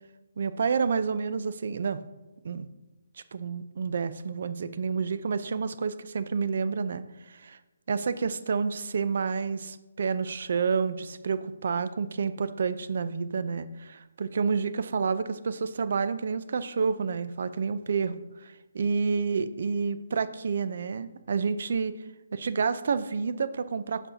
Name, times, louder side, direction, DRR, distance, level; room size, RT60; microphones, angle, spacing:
voice 1, 0.4-2.0 2.4-2.7 3.3-7.6 7.9-21.9 22.3-24.1, right 5 dB, 55° right, 13 dB, 0.5 m, -29 dB
8.3 x 7.2 x 2.7 m, 1.1 s
hypercardioid pair, 160°, 0 cm